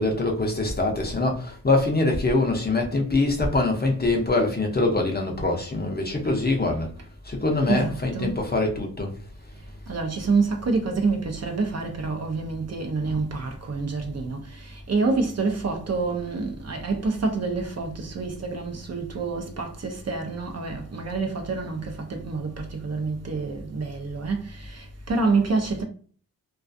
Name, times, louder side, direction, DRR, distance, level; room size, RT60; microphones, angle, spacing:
voice 1, 0.0-6.9 7.2-9.1, left 2 dB, 30° left, 0.5 m, -24 dB
voice 2, 7.7-8.4 9.9-25.8, right 4 dB, 45° right, 0.5 m, -27 dB
2.4 x 2.3 x 2.5 m
wide cardioid pair, 135°, 36 cm